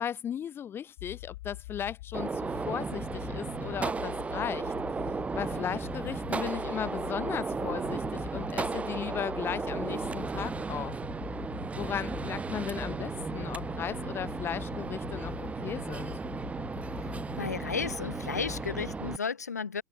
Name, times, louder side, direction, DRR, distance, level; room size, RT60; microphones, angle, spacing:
voice 1, 0.0-4.7 5.3-10.9 11.8-16.2, left 9 dB, 25° left, 0.6 m, -36 dB
sound 1, 1.0-19.1, left 19 dB, 55° left, 4.2 m, -44 dB
Gunshot gunfire, 2.1-19.2, right 4 dB, 15° right, 2.0 m, -35 dB
voice 2, 17.4-19.8, left 5 dB, 75° left, 1.5 m, -33 dB
figure-of-eight pair, 80°, 9 cm